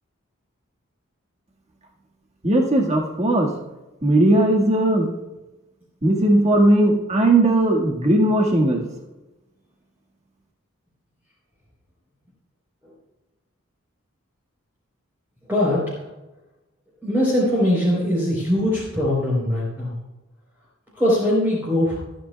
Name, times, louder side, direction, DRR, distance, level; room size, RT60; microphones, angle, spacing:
voice 1, 2.4-3.5 4.0-5.1 6.0-8.8, right 1 dB, 30° right, -1 dB, 1.7 m, -18 dB
voice 2, 15.5-15.8 17.0-19.9 21.0-22.0, left 1 dB, 10° right, -7 dB, 3.7 m, -21 dB
26.0 x 9.2 x 2.3 m, 1.1 s
head